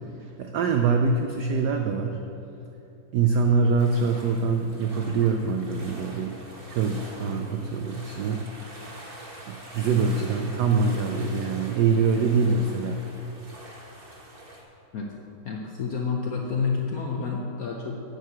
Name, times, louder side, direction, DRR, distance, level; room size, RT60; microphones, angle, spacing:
voice 1, 0.2-2.2 3.1-6.4 6.7-8.4 9.5-13.0, right 4 dB, 80° right, 4 dB, 0.9 m, -24 dB
sound 1, 3.8-14.6, right 1 dB, 30° right, 1.2 m, -44 dB
voice 2, 15.4-18.0, left 5 dB, 65° left, 0 dB, 0.9 m, -29 dB
9.4 x 4.7 x 7.8 m, 3.0 s
omnidirectional pair, 2.4 m